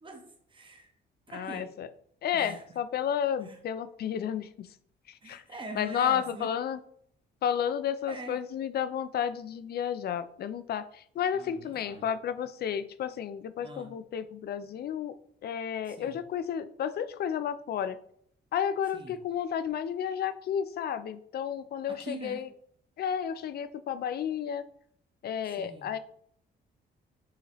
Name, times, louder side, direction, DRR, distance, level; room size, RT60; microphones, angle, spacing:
voice 1, 0.0-0.9 1.3-1.7 2.3-2.8 3.4-3.6 5.2-6.5 8.1-8.4 11.3-12.1 13.6-13.9 15.8-16.2 18.9-19.2 21.9-22.5 25.4-25.9, right 2 dB, 25° right, 1.0 m, -44 dB
voice 2, 1.3-1.9 2.2-4.7 5.1-5.4 5.8-6.8 7.4-15.1 15.4-18.0 18.5-22.5 23.0-24.6 25.2-26.0, left 8 dB, 55° left, 0.4 m, -32 dB
4.6 x 3.2 x 3.0 m
cardioid pair, 90°, 20 cm